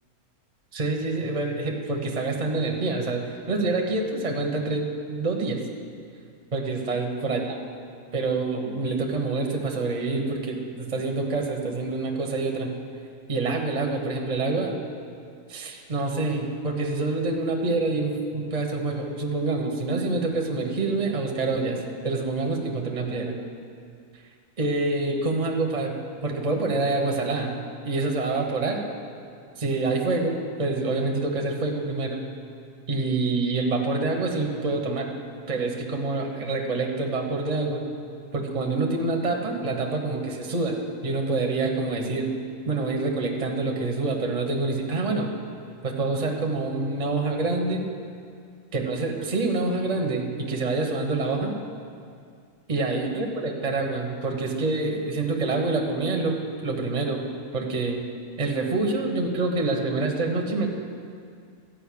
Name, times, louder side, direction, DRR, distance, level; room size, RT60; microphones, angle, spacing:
voice 1, 0.7-5.6 6.5-7.6 8.1-12.7 13.3-14.7 15.5-23.3 24.6-25.9 26.2-28.8 29.6-32.2 32.9-35.1 35.5-37.8 38.3-42.3 42.7-45.3 45.8-47.8 48.7-51.5 52.7-57.3 57.5-58.1 58.4-60.7, right 3 dB, 30° right, 1 dB, 1.1 m, -26 dB
13.0 x 5.5 x 8.5 m, 2.3 s
omnidirectional pair, 1.6 m